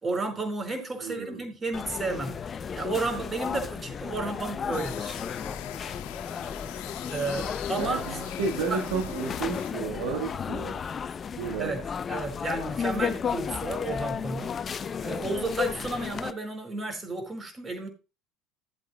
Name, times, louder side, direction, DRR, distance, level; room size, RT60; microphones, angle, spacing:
voice 1, 0.0-2.4 2.7-5.2 7.1-8.0 8.7-8.8 10.9-11.0 11.6-11.8 12.1-14.6 15.0-17.9, right 3 dB, 25° right, 4.7 m, -32 dB
voice 2, 1.0-1.4 7.7-10.8 11.4-11.8, right 5 dB, 80° right, 1.6 m, -32 dB
sound 1, 1.7-16.3, left 7 dB, 35° left, 0.6 m, -34 dB
sound 2, 4.7-9.7, left 13 dB, 70° left, 1.3 m, -42 dB
16.0 x 8.2 x 2.3 m
hypercardioid pair, 80°, 0 cm